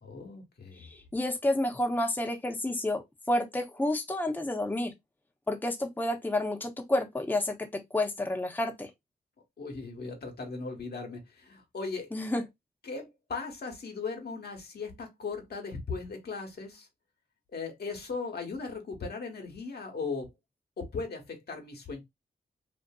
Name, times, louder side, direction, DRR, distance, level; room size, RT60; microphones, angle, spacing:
voice 1, 0.0-1.0 9.6-12.1 12.8-16.9 17.5-20.3 20.8-22.0, left 4 dB, 60° left, 1.1 m, -38 dB
voice 2, 0.8-3.0 3.3-4.9 5.5-7.5 7.9-8.9 12.1-12.4, left 1 dB, 10° left, 0.7 m, -30 dB
2.5 x 2.5 x 2.3 m
cardioid pair, 50°, 18 cm